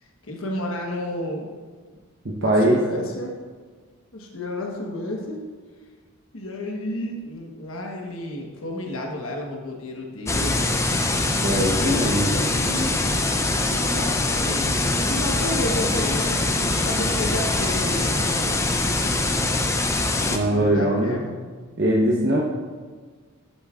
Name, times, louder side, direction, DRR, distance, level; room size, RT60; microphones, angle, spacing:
voice 1, 0.2-1.5 2.4-3.3 4.1-5.4 6.3-10.7 11.7-12.0 12.3-13.2 13.6-18.7 20.4-21.4, left 1 dB, 65° left, 0 dB, 1.3 m, -31 dB
voice 2, 2.2-2.8 11.4-12.3 20.3-21.2 21.8-22.4, right 1 dB, 50° right, -3 dB, 0.9 m, -21 dB
sound 1, 10.3-20.4, left 2 dB, 15° left, 0.5 m, -23 dB
10.5 x 9.7 x 2.5 m, 1.5 s
head